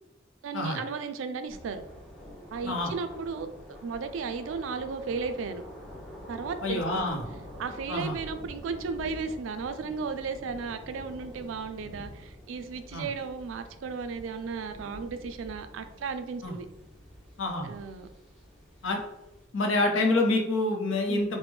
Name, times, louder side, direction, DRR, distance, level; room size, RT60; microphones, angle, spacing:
voice 1, 0.4-1.8 2.5-3.5 3.8-5.6 6.3-7.1 7.6-16.7 17.6-18.1 21.1-21.4, right 5 dB, 80° right, 9 dB, 0.3 m, -35 dB
sound 1, 1.5-19.5, equal, ahead, 0.8 m, -47 dB
voice 2, 6.6-7.2 7.9-8.2 12.9-13.1 16.4-16.5 17.4-17.7 18.8-19.0 19.5-21.4, left 2 dB, 85° left, 2 dB, 0.7 m, -27 dB
3.2 x 2.1 x 3.4 m, 0.92 s
head